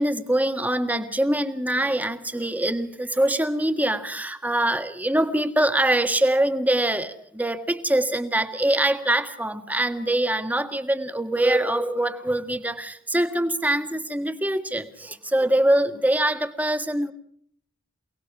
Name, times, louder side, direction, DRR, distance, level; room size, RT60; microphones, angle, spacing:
voice 1, 0.0-17.1, right 1 dB, 10° right, 8 dB, 1.6 m, -24 dB
28.5 x 19.0 x 6.0 m, 0.62 s
head